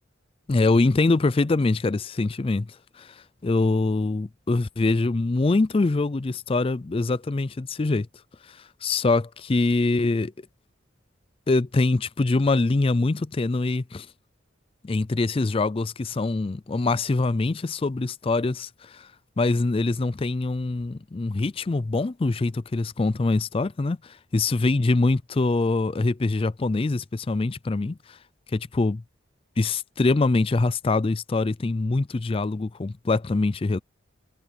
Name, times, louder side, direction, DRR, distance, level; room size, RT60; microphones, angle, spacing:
voice 1, 0.5-8.1 8.5-10.3 11.5-14.1 14.8-19.1 19.4-28.2 28.5-29.0 29.6-33.8, left 3 dB, 30° left, 0.4 m, -24 dB
head